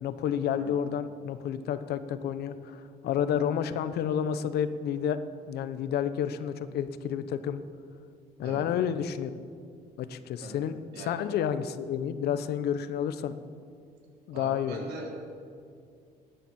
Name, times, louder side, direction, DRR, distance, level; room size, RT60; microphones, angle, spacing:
voice 1, 0.0-5.2 5.5-7.6 8.4-9.3 10.0-13.3 14.3-14.9, left 8 dB, 70° left, 12 dB, 0.9 m, -30 dB
voice 2, 8.4-8.8 10.4-10.6 10.9-11.3 14.3-15.2, right 2 dB, 80° right, -1 dB, 3.8 m, -41 dB
18.0 x 9.2 x 7.1 m, 2.3 s
cardioid pair, 110°, 17 cm